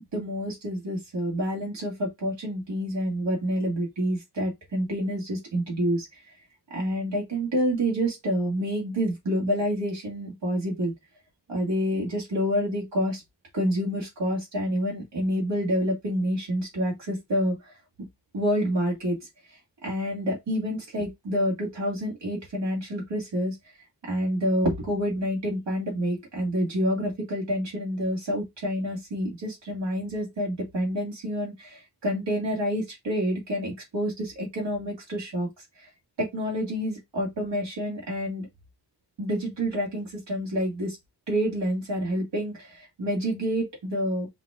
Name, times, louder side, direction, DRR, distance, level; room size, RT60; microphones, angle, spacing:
voice 1, 0.1-6.1 6.7-10.9 11.5-13.2 13.5-17.7 18.3-19.3 19.8-23.6 24.0-35.9 36.2-38.5 39.2-41.0 41.3-44.3, equal, 85° right, 2.2 m, -28 dB
5.5 x 2.4 x 3.4 m
wide cardioid pair, 80°, 42 cm